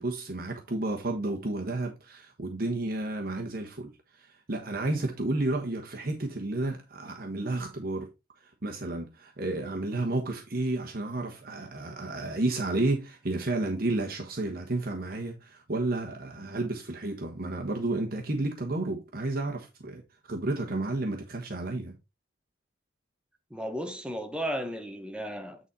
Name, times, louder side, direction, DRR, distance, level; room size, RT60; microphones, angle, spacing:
voice 1, 0.0-8.1 8.6-20.0 20.3-22.0, right 2 dB, 50° right, 1.2 m, -31 dB
voice 2, 23.5-25.6, equal, 5° right, 1.1 m, -34 dB
9.1 x 4.1 x 4.2 m
head